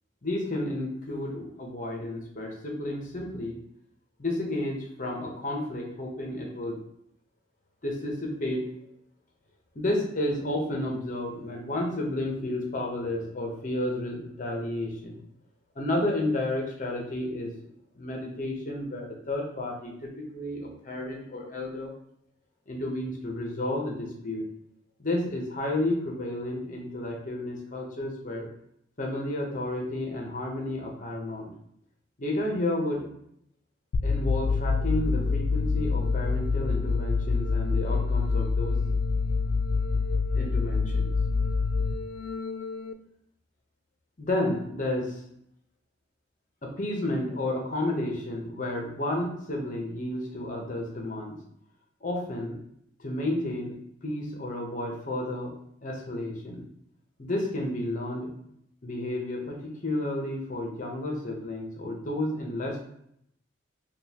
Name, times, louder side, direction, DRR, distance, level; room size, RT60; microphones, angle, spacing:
voice 1, 0.2-3.6 4.2-6.8 7.8-8.6 9.7-15.1 15.8-17.5 17.9-21.9 22.7-24.4 25.0-28.5 29.0-31.5 32.2-33.1 34.0-38.8 40.3-41.1 44.2-45.2 46.6-51.4 52.0-52.6 53.0-55.5 55.8-56.7 57.2-58.4 58.8-62.9, left 1 dB, 40° left, 0 dB, 0.8 m, -31 dB
sound 1, 33.9-42.9, left 4 dB, 85° left, 0.3 m, -26 dB
5.2 x 2.3 x 2.8 m, 0.73 s
head